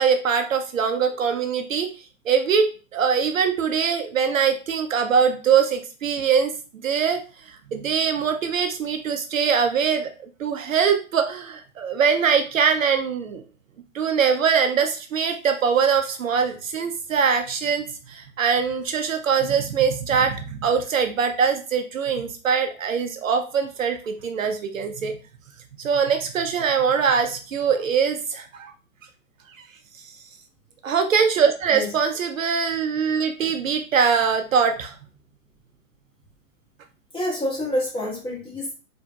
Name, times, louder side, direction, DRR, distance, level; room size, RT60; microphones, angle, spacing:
voice 1, 0.0-1.9 2.3-6.5 6.8-10.1 10.4-13.4 13.9-25.2 25.8-28.7 30.8-34.9, right 6 dB, 65° right, 6 dB, 0.6 m, -22 dB
voice 2, 37.1-38.8, left 1 dB, 10° left, -6 dB, 1.8 m, -28 dB
4.2 x 2.8 x 2.3 m, 0.35 s
figure-of-eight pair, 115°, 42 cm